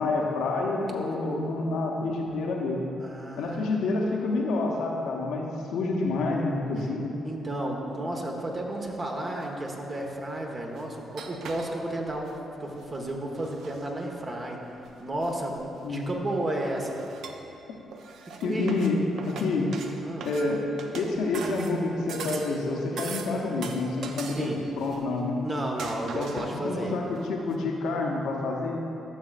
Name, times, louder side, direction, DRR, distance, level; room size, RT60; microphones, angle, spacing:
voice 1, 0.0-2.8 3.4-7.1 15.8-16.1 18.4-19.0 19.3-19.8 20.2-20.6 20.9-25.4 26.1-28.8, left 3 dB, 70° left, 0 dB, 0.8 m, -28 dB
voice 2, 3.0-3.6 7.2-14.6 15.0-16.9 18.4-18.7 20.0-20.3 24.3-24.6 25.4-27.0, right 1 dB, 40° right, 0 dB, 1.3 m, -32 dB
sound 1, 9.4-9.5 10.5-12.4 12.8-13.9 14.8-16.1 16.5-17.6 17.9-22.6 23.0-25.3 25.6-26.7 27.2-27.3 27.5-27.6, right 5 dB, 65° right, 0.5 m, -41 dB
13.5 x 7.2 x 2.5 m, 2.9 s
hypercardioid pair, 45°, 0 cm